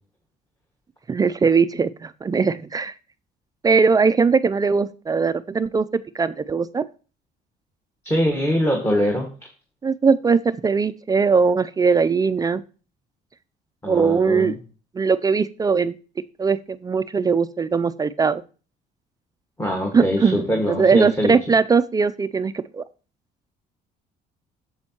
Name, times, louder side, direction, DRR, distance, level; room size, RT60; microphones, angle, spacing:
voice 1, 1.1-2.9 3.6-6.8 9.8-12.6 13.9-14.6 14.9-16.0 16.4-18.4 19.9-22.8, right 5 dB, 20° right, 13 dB, 0.3 m, -20 dB
voice 2, 8.0-9.3 13.8-14.6 19.6-21.3, equal, 15° left, 0 dB, 1.6 m, -23 dB
8.7 x 7.2 x 2.9 m, 0.36 s
cardioid pair, 110°, 17 cm